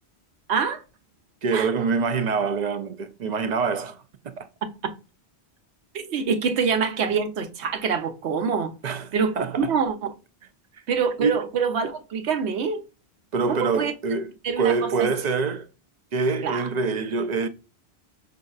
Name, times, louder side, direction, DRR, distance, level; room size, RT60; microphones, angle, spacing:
voice 1, 0.5-0.8 1.5-1.7 4.8-4.9 5.9-8.7 9.1-10.0 10.9-12.8 13.5-13.9 14.4-15.1 16.4-16.7, right 6 dB, 80° right, 1.0 m, -25 dB
voice 2, 1.4-4.5 8.8-9.1 9.4-9.8 11.2-11.4 13.3-14.3 14.6-15.7 16.1-17.5, right 4 dB, 55° right, 0.5 m, -25 dB
5.2 x 2.6 x 2.3 m
omnidirectional pair, 1.1 m